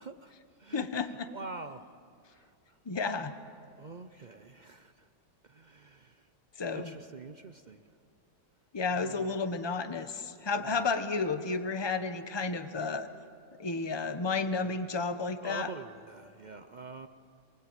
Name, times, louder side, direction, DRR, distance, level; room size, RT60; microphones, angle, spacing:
voice 1, 0.0-2.0 2.3-2.8 3.8-5.1 5.4-6.3 6.7-7.9 8.9-9.3 10.6-10.8 15.4-17.1, right 3 dB, 65° right, 10 dB, 0.4 m, -46 dB
voice 2, 0.7-1.3 2.9-3.3 6.6-6.9 8.7-13.1 13.6-15.7, left 4 dB, 20° left, 9 dB, 0.9 m, -32 dB
28.5 x 20.5 x 8.9 m, 2.3 s
omnidirectional pair, 1.9 m